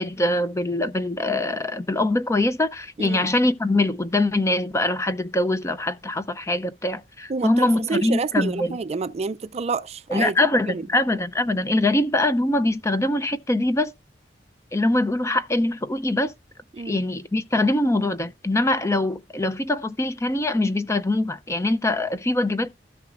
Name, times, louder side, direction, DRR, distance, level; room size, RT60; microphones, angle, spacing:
voice 1, 0.0-8.8 10.1-13.9 14.7-16.3 16.9-22.7, left 1 dB, 15° left, 0.5 m, -23 dB
voice 2, 3.0-3.3 7.3-10.3 10.7-10.9 16.7-17.0, right 4 dB, 35° right, 0.4 m, -28 dB
16.0 x 5.9 x 2.5 m
head